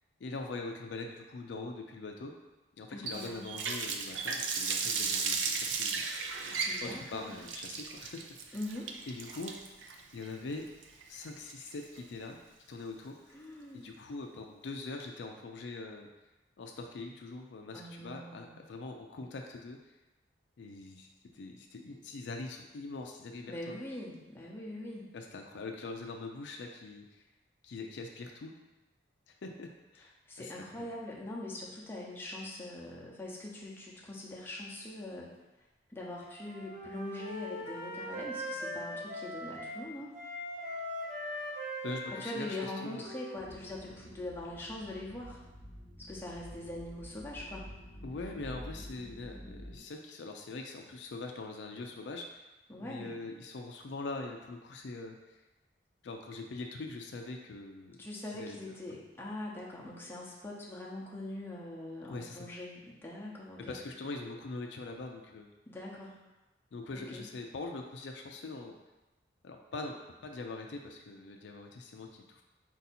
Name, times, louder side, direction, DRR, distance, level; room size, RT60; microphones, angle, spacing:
voice 1, 0.2-2.3 2.8-6.0 6.8-8.2 8.5-8.6 9.1-9.6 10.1-10.7 11.1-12.4 12.7-13.4 13.7-16.1 16.6-19.8 20.6-23.8 25.1-27.2 27.6-28.5 29.3-30.1 30.4-30.9 41.8-43.0 48.0-52.4 52.8-55.4 56.0-58.0 58.3-58.6 58.9-59.0 62.1-62.5 63.6-65.5 66.7-68.8 69.4-72.4, left 3 dB, 70° left, 3 dB, 0.4 m, -43 dB
voice 2, 2.9-3.5 6.7-7.3 8.5-8.9 13.3-13.9 17.7-18.6 23.5-25.1 30.3-35.3 35.9-40.1 42.1-45.4 46.0-47.7 52.7-53.1 58.0-63.8 65.7-66.2 66.9-67.3, left 1 dB, 10° left, -5 dB, 0.7 m, -42 dB
Water tap faucet, 3.1-12.0, right 5 dB, 80° right, 0.5 m, -35 dB
Wind instrument woodwind instrument, 36.3-39.8 40.1-43.9, equal, 40° right, 1.0 m, -41 dB
sound 1, 43.3-49.8, equal, 40° left, 1.1 m, -49 dB
4.5 x 2.7 x 4.1 m, 1.1 s
head